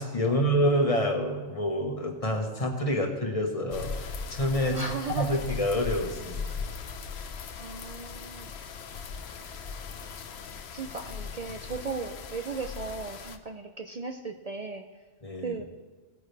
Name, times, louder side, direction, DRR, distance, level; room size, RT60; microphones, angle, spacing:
voice 1, 0.0-4.8 5.1-6.6 15.2-15.6, equal, 35° left, 2 dB, 1.4 m, -27 dB
sound 1, 3.7-13.4, left 5 dB, 75° left, 1.0 m, -39 dB
voice 2, 4.7-5.4 6.2-6.3 7.6-8.5 10.0-10.2 10.5-14.8 15.4-15.6, right 4 dB, 45° right, 3 dB, 0.6 m, -37 dB
18.0 x 9.5 x 3.4 m, 1.3 s
omnidirectional pair, 1.1 m